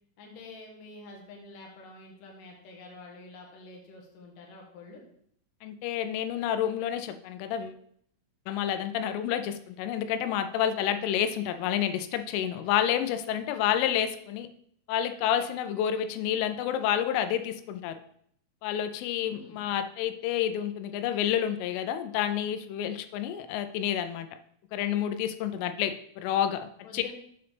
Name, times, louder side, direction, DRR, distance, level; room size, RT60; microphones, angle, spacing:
voice 1, 0.2-5.0 19.1-19.6 26.8-27.1, left 3 dB, 65° left, 0 dB, 2.2 m, -48 dB
voice 2, 5.6-7.8 8.5-14.5 14.9-18.0 18.6-24.3 24.7-27.0, left 10 dB, 90° left, 9 dB, 3.1 m, -29 dB
7.7 x 6.8 x 3.4 m, 0.67 s
omnidirectional pair, 5.6 m